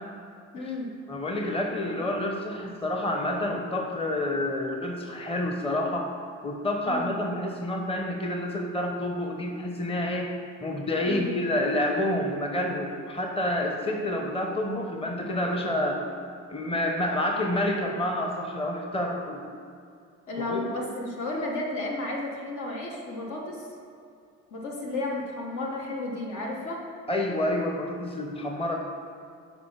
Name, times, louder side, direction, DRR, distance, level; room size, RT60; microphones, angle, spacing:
voice 1, 0.5-0.9 6.9-7.1 11.0-11.3 20.3-23.7 24.5-26.9, left 2 dB, 70° left, -1 dB, 1.5 m, -33 dB
voice 2, 1.1-6.1 6.4-10.3 10.6-16.0 16.5-19.4 20.4-20.6 27.1-28.7, left 1 dB, 20° left, 2 dB, 0.9 m, -28 dB
6.7 x 4.7 x 5.7 m, 2.4 s
cardioid pair, 90°, 30 cm